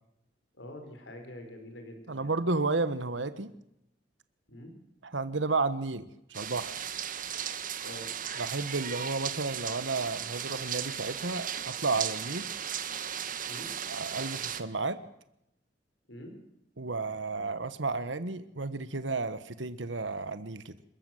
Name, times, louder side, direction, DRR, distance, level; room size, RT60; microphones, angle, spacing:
voice 1, 0.6-2.3 4.5-4.7 7.8-8.1 13.4-13.7 16.1-16.4, left 1 dB, 85° left, 5 dB, 4.9 m, -45 dB
voice 2, 2.1-3.5 5.0-6.0 6.3-6.8 8.4-12.5 13.9-15.0 16.8-20.7, right 3 dB, 90° right, 13 dB, 1.3 m, -32 dB
sound 1, 6.3-14.6, right 8 dB, 50° right, 1.4 m, -36 dB
27.0 x 14.0 x 7.8 m, 0.81 s
head